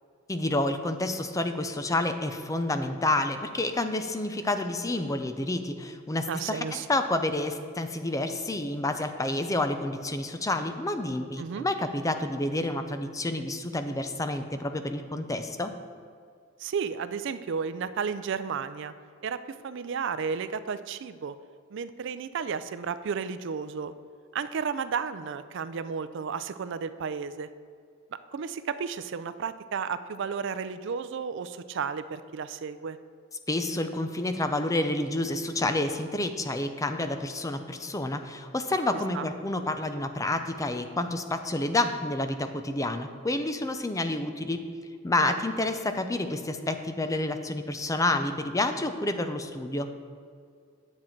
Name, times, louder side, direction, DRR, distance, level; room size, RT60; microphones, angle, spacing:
voice 1, 0.3-15.7 33.5-44.6 45.0-49.9, left 2 dB, 15° left, 8 dB, 0.5 m, -29 dB
voice 2, 6.3-6.9 11.4-11.6 16.6-18.9 19.2-21.3 21.7-23.9 24.3-27.5 28.3-33.0 39.1-39.3 45.2-45.3, right 6 dB, 65° right, 13 dB, 0.4 m, -33 dB
10.0 x 7.3 x 4.5 m, 2.2 s
head